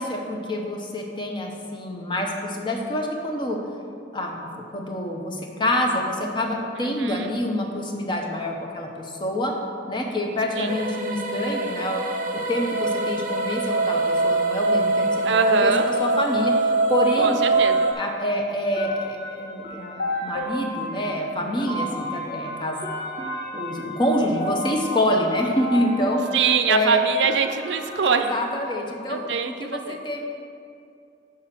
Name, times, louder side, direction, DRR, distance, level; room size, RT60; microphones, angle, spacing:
voice 1, 0.0-3.6 4.1-9.5 9.9-12.0 12.5-15.7 16.0-17.4 18.0-22.8 23.5-26.3 26.7-27.0 28.0-30.2, left 1 dB, 25° left, 1 dB, 0.8 m, -26 dB
voice 2, 6.8-7.3 10.6-10.7 15.2-15.8 17.2-17.9 26.3-28.3 29.1-30.0, right 6 dB, 85° right, 7 dB, 0.5 m, -23 dB
sound 1, 10.7-17.9, right 2 dB, 45° right, 0.7 m, -23 dB
sound 2, 17.2-28.5, left 1 dB, 70° left, 1.7 m, -33 dB
6.1 x 5.0 x 5.9 m, 2.4 s
head